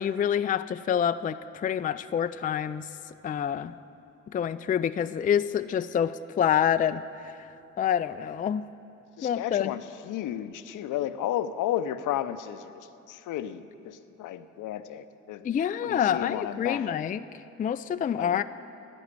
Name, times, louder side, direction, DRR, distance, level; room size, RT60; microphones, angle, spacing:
voice 1, 0.0-2.9 3.2-3.7 4.3-7.0 7.8-8.6 9.2-9.7 15.4-17.2 17.6-18.4, left 9 dB, 25° left, 12 dB, 0.4 m, -27 dB
voice 2, 9.2-12.7 13.1-15.5 15.8-16.9 18.2-18.4, left 11 dB, 65° left, 12 dB, 0.7 m, -33 dB
11.5 x 9.2 x 8.3 m, 2.7 s
hypercardioid pair, 55°, 33 cm